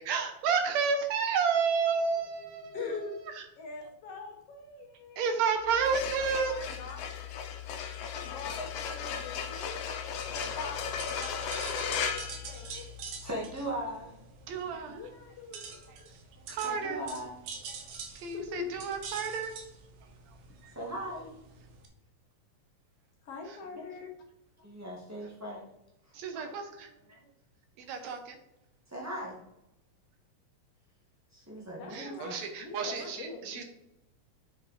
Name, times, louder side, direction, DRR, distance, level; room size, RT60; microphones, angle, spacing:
voice 1, 0.0-3.0 3.3-3.4 5.2-6.6 14.5-15.0 15.9-16.0 16.5-17.0 18.2-19.5 20.6-20.7 26.1-26.9 27.8-28.4 31.9-33.6, right 5 dB, 70° right, 6 dB, 2.1 m, -31 dB
voice 2, 2.7-3.2 3.6-5.5 6.0-7.2 8.2-9.9 10.1-12.9 14.9-16.1 18.3-18.7 23.2-24.1 31.7-33.6, left 4 dB, 60° left, 2 dB, 1.9 m, -43 dB
sound 1, 5.7-13.2, left 7 dB, 80° left, 2.2 m, -36 dB
sound 2, 10.1-21.9, right 5 dB, 85° right, 2.6 m, -46 dB
voice 3, 13.2-14.1 16.3-17.3 20.7-21.3 23.7-23.8 24.6-25.7 26.3-26.5 28.9-29.4 31.3-32.4, right 1 dB, 25° right, -3 dB, 0.3 m, -39 dB
7.8 x 5.8 x 4.1 m, 0.91 s
omnidirectional pair, 3.4 m